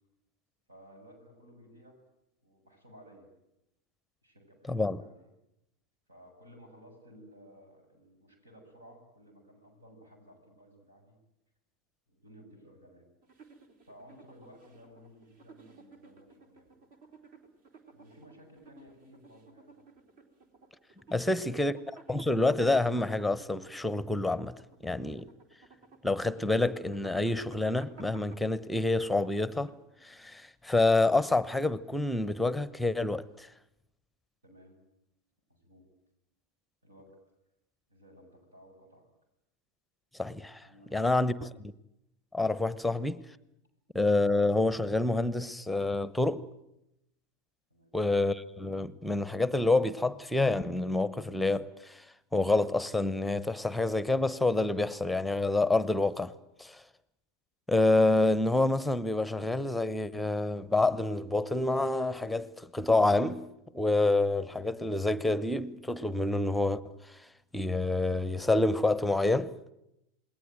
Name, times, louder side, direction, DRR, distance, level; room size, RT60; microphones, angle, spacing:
voice 1, 0.7-2.0 2.4-3.3 4.2-5.3 6.1-11.2 12.1-13.1 13.8-16.7 17.9-19.7 21.1-21.6 34.4-34.8 35.5-35.8 36.8-37.2 37.9-39.1 40.6-41.3 47.7-47.9, equal, 75° right, 7.4 m, -56 dB
voice 2, 4.7-5.0 21.1-21.7 22.1-24.5 24.8-25.3 26.0-29.7 30.0-33.5 40.2-41.3 42.3-43.2 43.9-46.4 47.9-52.0 52.3-56.3 56.6-56.8 57.7-63.5 63.7-67.2 67.5-69.5, left 2 dB, 5° left, 1.0 m, -27 dB
sound 1, 13.2-30.1, right 4 dB, 50° right, 3.7 m, -55 dB
28.0 x 20.5 x 9.1 m
figure-of-eight pair, 85°, 0 cm